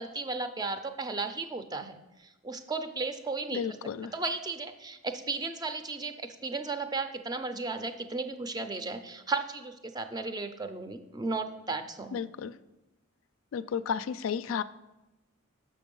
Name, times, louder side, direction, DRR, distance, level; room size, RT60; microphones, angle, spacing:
voice 1, 0.0-3.8 4.1-12.2, right 3 dB, 20° right, 8 dB, 0.5 m, -35 dB
voice 2, 3.5-4.1 12.1-12.5 13.5-14.6, left 7 dB, 70° left, 14 dB, 0.3 m, -33 dB
7.0 x 5.9 x 5.3 m, 1.0 s
head